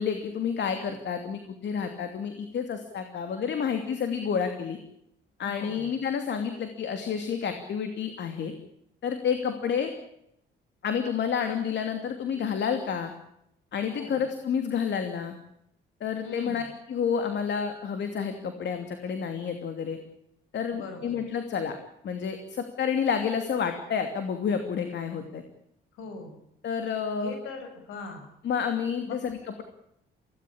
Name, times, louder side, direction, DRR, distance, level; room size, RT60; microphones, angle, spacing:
voice 1, 0.0-4.8 5.4-8.5 9.0-9.9 10.8-13.1 13.7-15.3 16.0-16.6 16.9-20.0 20.5-21.8 22.0-25.4 26.6-27.3 28.4-29.6, left 7 dB, 65° left, 7 dB, 2.8 m, -29 dB
voice 2, 5.4-5.9 13.8-14.3 16.2-16.7 20.7-21.3 25.9-26.4 27.2-28.3 29.0-29.2, left 4 dB, 90° left, 6 dB, 6.7 m, -41 dB
24.5 x 18.0 x 8.8 m, 0.79 s
cardioid pair, 90°, 20 cm